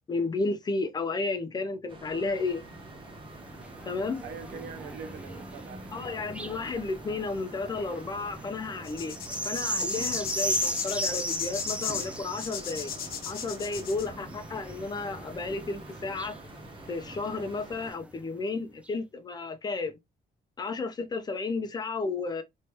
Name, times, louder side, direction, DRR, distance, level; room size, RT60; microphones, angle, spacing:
voice 1, 0.1-2.6 3.9-4.2 5.9-9.2 9.4-12.9 13.3-16.3 16.9-20.0 20.6-22.4, left 3 dB, 25° left, 0.7 m, -32 dB
sound 1, 1.9-17.9, right 2 dB, 30° right, 1.1 m, -48 dB
sound 2, 2.4-18.2 18.9-19.0, right 1 dB, 5° right, 0.4 m, -38 dB
voice 2, 4.2-6.3, right 6 dB, 85° right, 0.9 m, -44 dB
sound 3, 8.8-14.1, left 9 dB, 65° left, 1.0 m, -35 dB
4.4 x 3.3 x 3.1 m
cardioid pair, 170°, 17 cm